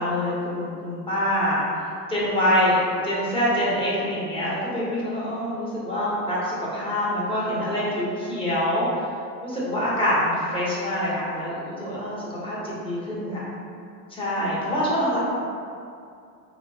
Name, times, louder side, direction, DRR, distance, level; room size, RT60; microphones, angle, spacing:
voice 1, 0.0-2.8 3.0-8.9 9.4-13.5 14.1-15.2, equal, 10° left, -8 dB, 0.7 m, -25 dB
3.1 x 2.0 x 2.6 m, 2.4 s
hypercardioid pair, 90°, 47 cm